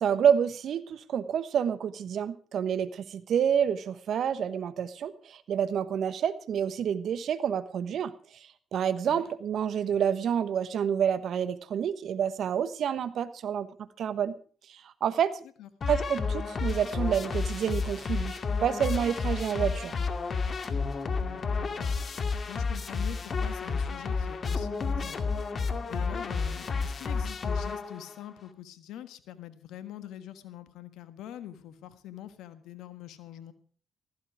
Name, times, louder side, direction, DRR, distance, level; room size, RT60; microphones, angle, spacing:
voice 1, 0.0-8.1 8.7-14.4 14.7-15.4 15.9-19.9, right 8 dB, 65° right, 14 dB, 1.2 m, -28 dB
sound 1, 15.8-28.2, left 4 dB, 50° left, 2.2 m, -31 dB
voice 2, 21.1-22.0 22.4-25.3 25.9-33.5, left 11 dB, 75° left, 12 dB, 1.4 m, -44 dB
15.5 x 15.0 x 4.7 m, 0.43 s
hypercardioid pair, 45°, 0 cm